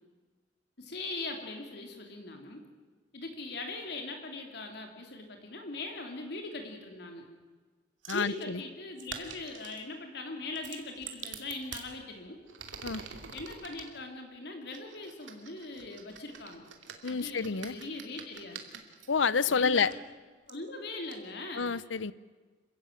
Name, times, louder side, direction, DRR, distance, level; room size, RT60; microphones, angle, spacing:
voice 1, 0.8-2.6 3.1-7.3 8.1-12.4 13.3-16.7 17.1-18.6 19.5-20.0 20.5-21.7, left 2 dB, 60° left, 3 dB, 3.1 m, -41 dB
sound 1, 8.0-8.3 9.0-9.9 10.6-11.9 12.5-13.9 14.7-19.1 19.9-20.0 20.5-20.6 21.1-21.2, right 6 dB, 85° right, 2.6 m, -46 dB
voice 2, 8.1-8.6 12.8-13.0 17.0-17.8 19.1-19.9 21.6-22.1, left 5 dB, 85° left, 19 dB, 0.8 m, -28 dB
27.0 x 15.0 x 9.3 m, 1.4 s
head